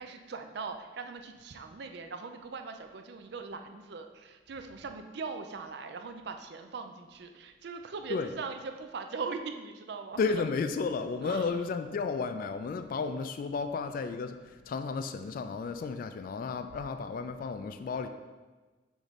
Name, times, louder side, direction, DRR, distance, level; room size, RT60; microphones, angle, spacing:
voice 1, 0.0-10.2 11.2-11.5, right 4 dB, 65° right, 6 dB, 0.5 m, -40 dB
voice 2, 10.2-18.1, left 4 dB, 50° left, 9 dB, 0.3 m, -33 dB
6.3 x 3.1 x 5.0 m, 1.3 s
head